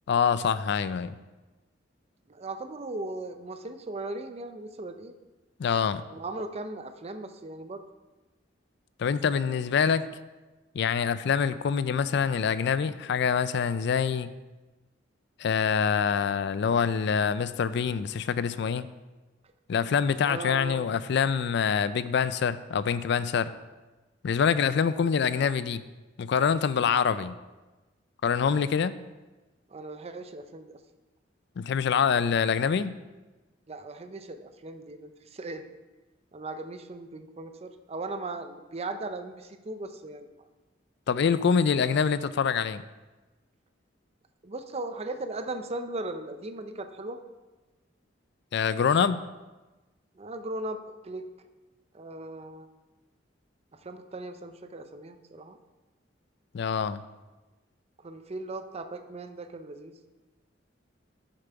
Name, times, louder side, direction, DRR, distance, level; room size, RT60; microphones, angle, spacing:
voice 1, 0.1-1.1 5.6-6.0 9.0-10.0 10.7-14.3 15.4-18.9 19.7-23.5 24.2-25.8 26.2-27.3 28.2-28.9 31.6-32.9 41.1-42.8 48.5-49.2 56.5-57.0, left 6 dB, 65° left, 14 dB, 0.4 m, -25 dB
voice 2, 2.3-5.1 6.1-7.8 20.2-21.1 29.7-30.8 33.7-35.7 36.3-40.3 44.4-47.2 50.1-51.3 51.9-52.7 53.7-55.6 58.0-59.9, right 2 dB, 35° right, 8 dB, 0.5 m, -38 dB
7.6 x 6.7 x 4.6 m, 1.2 s
head